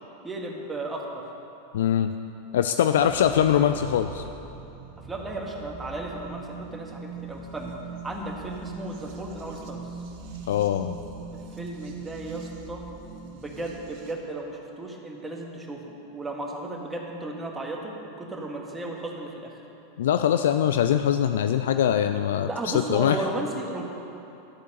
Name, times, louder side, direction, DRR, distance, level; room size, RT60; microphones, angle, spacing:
voice 1, 0.2-1.2 3.2-3.3 5.0-7.7 8.0-9.8 11.3-12.8 13.3-19.6 22.4-23.8, right 2 dB, 10° right, -1 dB, 1.8 m, -35 dB
voice 2, 1.7-2.1 2.5-4.2 10.5-11.0 20.0-23.2, left 10 dB, 65° left, 9 dB, 0.4 m, -22 dB
sound 1, 3.0-14.1, right 4 dB, 55° right, 1.4 m, -41 dB
12.0 x 8.1 x 6.7 m, 2.9 s
figure-of-eight pair, 85°, 0 cm